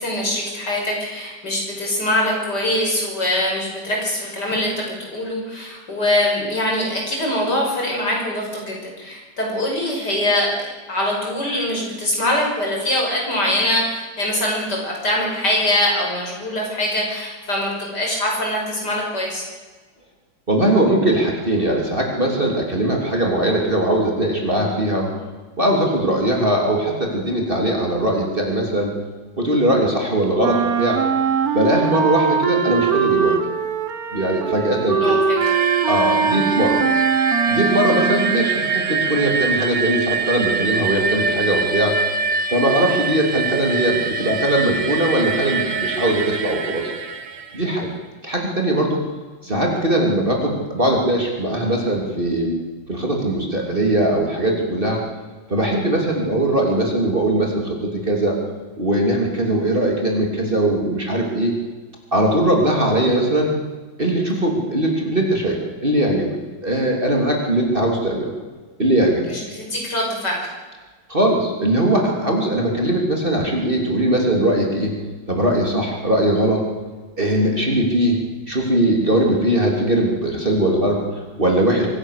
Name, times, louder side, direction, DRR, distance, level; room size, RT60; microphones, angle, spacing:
voice 1, 0.0-19.4 35.0-35.4 69.3-70.4, left 1 dB, 55° left, -1 dB, 6.5 m, -23 dB
voice 2, 20.5-25.1 25.6-28.9 29.4-31.0 31.5-33.4 34.1-35.2 35.9-36.8 37.5-42.0 42.5-46.9 47.5-47.9 48.2-49.0 49.4-52.6 52.9-55.0 55.5-58.4 58.8-61.5 62.1-63.6 64.0-66.3 66.6-68.3 68.8-69.2 71.1-74.9 75.3-76.6 77.2-78.2 78.5-81.9, right 1 dB, 25° right, 0 dB, 3.2 m, -20 dB
Wind instrument woodwind instrument, 30.4-38.5, right 6 dB, 55° right, 1.7 m, -21 dB
sound 1, 35.4-47.8, right 4 dB, 70° right, 0.4 m, -24 dB
24.5 x 16.0 x 6.6 m, 1.3 s
omnidirectional pair, 2.1 m